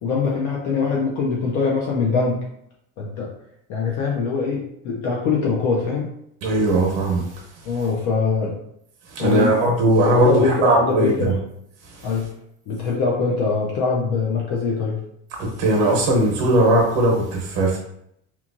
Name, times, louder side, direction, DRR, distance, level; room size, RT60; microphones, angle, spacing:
voice 1, 0.0-2.4 3.0-3.3 3.7-6.1 7.7-8.5 9.2-9.5 9.8-11.4 12.0-12.3 12.7-15.0, left 4 dB, 45° left, -2 dB, 0.5 m, -23 dB
voice 2, 6.4-7.2 9.1-11.3 11.9-12.1 15.4-17.8, right 1 dB, 70° right, -1 dB, 0.9 m, -19 dB
2.9 x 2.3 x 2.5 m, 0.74 s
cardioid pair, 175°, 41 cm